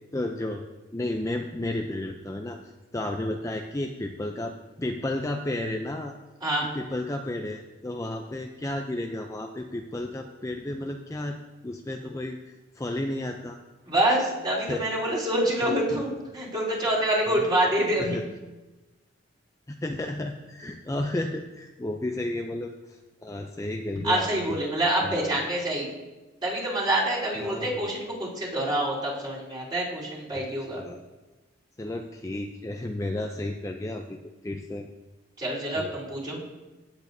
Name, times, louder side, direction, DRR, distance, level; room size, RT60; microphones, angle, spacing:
voice 1, 0.1-0.6 0.9-2.6 2.9-6.1 6.7-11.4 11.6-12.4 12.8-13.6 14.6-14.9 15.6-15.8 17.3-17.7 18.0-18.2 19.7-24.6 25.0-25.2 27.3-27.8 30.3-31.0 31.8-34.2 34.4-34.9 35.7-36.0, left 1 dB, 15° left, 3 dB, 0.4 m, -32 dB
voice 2, 13.9-18.2 24.0-25.9 26.4-30.8 35.4-36.4, right 1 dB, 25° right, -7 dB, 3.7 m, -26 dB
16.0 x 8.7 x 2.7 m, 1.1 s
head